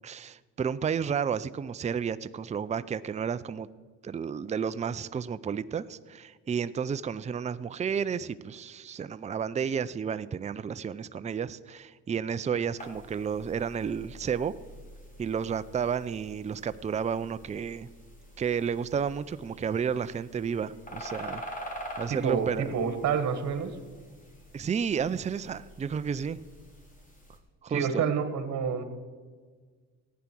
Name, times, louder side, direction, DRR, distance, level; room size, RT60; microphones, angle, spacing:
voice 1, 0.0-3.7 4.0-14.6 15.2-17.9 18.4-21.4 22.0-22.6 24.5-26.4 27.6-28.0, right 7 dB, 20° right, 14 dB, 0.5 m, -31 dB
sound 1, 12.8-27.4, equal, 25° left, 3.1 m, -46 dB
voice 2, 22.1-23.8 27.7-28.8, right 6 dB, 55° right, 9 dB, 1.7 m, -28 dB
14.5 x 9.6 x 6.1 m, 1.5 s
supercardioid pair, 80°, 32 cm